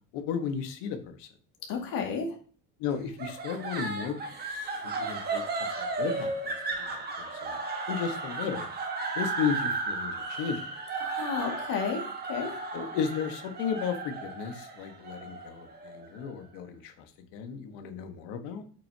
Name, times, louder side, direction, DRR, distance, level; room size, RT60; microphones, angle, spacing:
voice 1, 0.1-1.3 2.8-4.1 4.5-7.6 7.9-8.7 9.1-10.6 12.7-17.1 17.3-18.6, left 7 dB, 75° left, 6 dB, 1.5 m, -34 dB
voice 2, 1.7-2.4 11.0-12.6, left 6 dB, 50° left, 2 dB, 2.2 m, -32 dB
sound 1, 3.2-16.4, right 3 dB, 25° right, 1.2 m, -34 dB
8.3 x 6.1 x 2.8 m, 0.41 s
cardioid pair, 170°, 42 cm